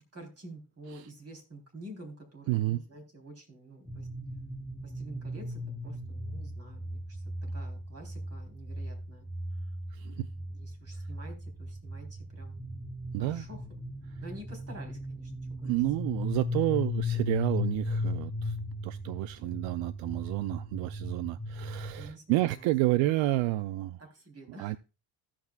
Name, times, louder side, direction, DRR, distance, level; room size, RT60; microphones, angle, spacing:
voice 1, 0.1-4.1 4.8-7.2 7.5-9.3 10.0-12.6 13.2-13.6 14.2-15.7 22.0-22.7 24.0-24.8, right 1 dB, 30° right, 3.7 m, -48 dB
voice 2, 2.5-2.8 9.9-10.3 13.1-13.4 15.6-18.6 18.8-24.0 24.6-24.8, right 17 dB, 75° right, 0.6 m, -30 dB
sound 1, 3.9-22.1, left 2 dB, 5° right, 1.0 m, -37 dB
16.0 x 6.0 x 2.3 m
supercardioid pair, 90°, 45 cm